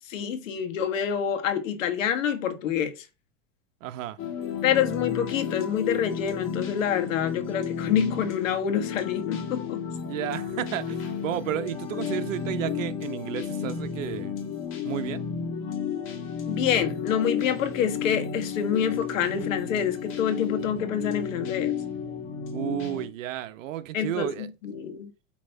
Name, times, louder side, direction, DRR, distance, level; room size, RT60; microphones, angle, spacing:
voice 1, 0.1-2.9 4.6-9.8 16.5-21.7 23.9-25.1, left 8 dB, 90° left, 1.5 m, -27 dB
voice 2, 3.8-4.2 10.0-14.4 14.8-15.2 22.5-24.5, right 12 dB, 80° right, 1.0 m, -32 dB
sound 1, 4.2-23.1, left 7 dB, 30° left, 1.4 m, -32 dB
8.5 x 3.1 x 5.6 m
supercardioid pair, 150°, 38 cm